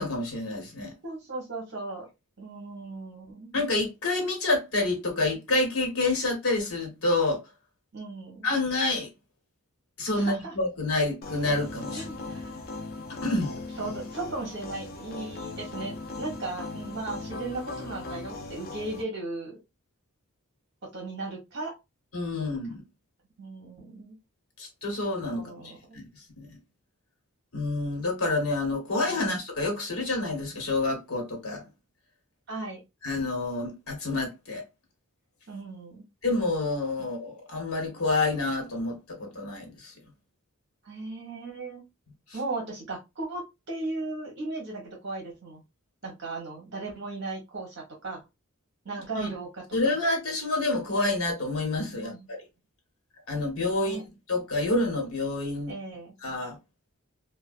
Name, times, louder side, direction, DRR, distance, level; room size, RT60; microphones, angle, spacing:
voice 1, 0.0-0.9 3.5-7.4 8.4-9.1 10.0-12.1 13.2-13.5 22.1-22.8 24.6-25.5 25.9-26.1 26.4-26.6 27.5-31.6 33.0-34.6 36.2-39.9 49.2-49.3 49.7-52.4 53.3-54.0 54.3-55.7 56.2-56.6, left 2 dB, 75° left, 1.1 m, -28 dB
voice 2, 1.0-2.1 2.4-3.6 7.9-8.5 10.2-10.5 11.9-12.6 13.8-19.6 20.9-21.7 22.4-22.5 23.4-24.2 25.3-26.0 29.0-29.4 32.5-32.8 35.5-36.1 40.8-41.8 42.3-45.6 46.0-48.2 48.8-49.9 51.9-52.3 53.8-54.0 55.7-56.1, right 2 dB, 50° right, 0.9 m, -37 dB
sound 1, 11.2-19.0, left 3 dB, 45° left, 0.4 m, -38 dB
2.4 x 2.2 x 2.3 m
head